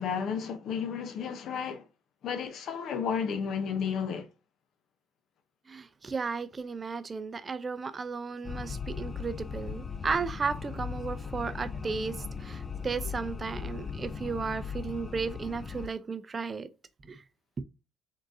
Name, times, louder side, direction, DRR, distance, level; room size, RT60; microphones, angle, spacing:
voice 1, 0.0-1.9 2.2-4.3, left 7 dB, 65° left, 0.7 m, -32 dB
voice 2, 5.7-16.7 17.0-17.2 17.6-17.7, right 5 dB, 35° right, 0.4 m, -34 dB
sound 1, 8.4-15.9, left 6 dB, 35° left, 0.4 m, -38 dB
3.8 x 3.7 x 2.6 m
supercardioid pair, 80°, 0 cm